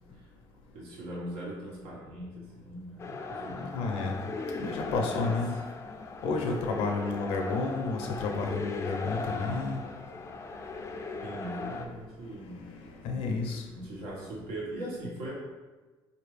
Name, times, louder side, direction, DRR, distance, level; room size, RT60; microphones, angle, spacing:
voice 1, 0.7-3.5 4.1-4.3 5.0-5.3 6.5-6.6 11.2-12.6 13.7-15.4, right 1 dB, 90° right, -5 dB, 1.5 m, -40 dB
sound 1, 3.0-11.9, left 3 dB, 30° left, 0.4 m, -38 dB
voice 2, 3.5-4.1 4.5-5.5 6.2-9.8 12.5-13.6, left 3 dB, 90° left, 2 dB, 0.7 m, -31 dB
4.3 x 2.9 x 3.3 m, 1.3 s
cardioid pair, 125°, 10 cm